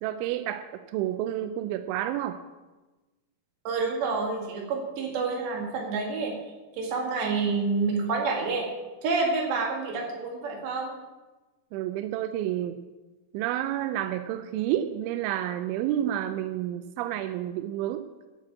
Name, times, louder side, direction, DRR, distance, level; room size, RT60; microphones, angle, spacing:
voice 1, 0.0-2.4 11.7-12.8 13.3-18.1, right 12 dB, 85° right, 9 dB, 2.7 m, -30 dB
voice 2, 3.7-6.4 6.7-8.7 9.0-11.0, right 4 dB, 60° right, 0 dB, 4.0 m, -28 dB
11.5 x 6.0 x 8.5 m, 1.2 s
omnidirectional pair, 5.9 m